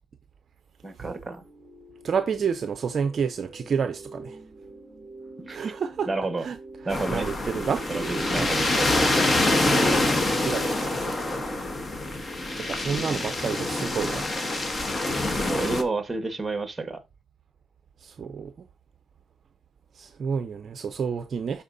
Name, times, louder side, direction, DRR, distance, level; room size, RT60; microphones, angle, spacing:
voice 1, 0.8-1.4 5.4-5.7 6.1-6.5 6.8-7.3 7.9-9.6 15.5-17.0, right 3 dB, 15° right, 1.5 m, -31 dB
sound 1, 1.4-9.5, right 2 dB, 5° left, 3.6 m, -46 dB
voice 2, 2.0-4.4 5.5-6.1 6.4-6.6 6.8-8.5 8.7-8.9 9.7-11.4 12.0-12.1 12.6-14.7 18.0-18.7 19.9-21.6, right 6 dB, 50° right, 0.5 m, -30 dB
sound 2, 6.9-15.8, left 2 dB, 25° left, 1.2 m, -25 dB
12.5 x 4.2 x 2.6 m
cardioid pair, 90°, 0 cm